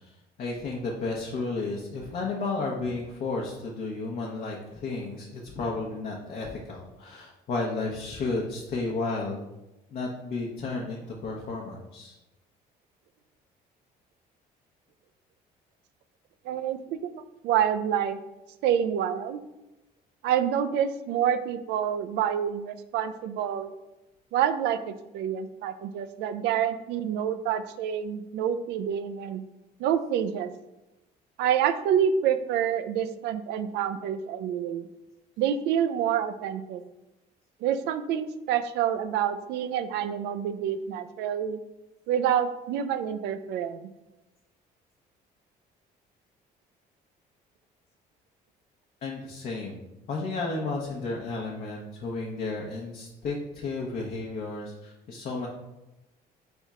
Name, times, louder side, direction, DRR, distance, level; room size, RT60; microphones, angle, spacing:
voice 1, 0.4-9.4 9.9-12.1 49.0-55.5, left 3 dB, 55° left, -2 dB, 0.8 m, -33 dB
voice 2, 16.5-18.2 18.6-19.4 20.2-23.7 24.3-29.4 29.8-30.5 31.4-34.9 35.4-36.8 37.6-41.6 42.1-43.9, right 9 dB, 85° right, 11 dB, 0.4 m, -27 dB
4.2 x 3.5 x 3.6 m, 0.99 s
cardioid pair, 110°, 17 cm